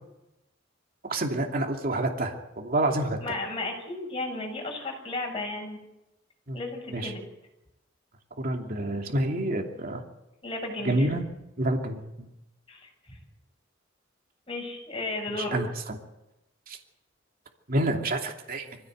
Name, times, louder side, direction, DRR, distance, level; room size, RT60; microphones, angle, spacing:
voice 1, 1.0-3.2 6.5-6.6 6.9-7.1 8.4-10.0 10.8-11.2 11.6-12.3 15.5-16.0 16.7-16.8 17.7-18.7, right 1 dB, 50° right, 2 dB, 2.8 m, -28 dB
voice 2, 3.2-5.8 6.5-7.2 10.4-11.1 12.7-13.2 14.5-15.6, left 2 dB, 30° left, 1 dB, 7.5 m, -34 dB
24.5 x 16.0 x 8.0 m, 0.93 s
head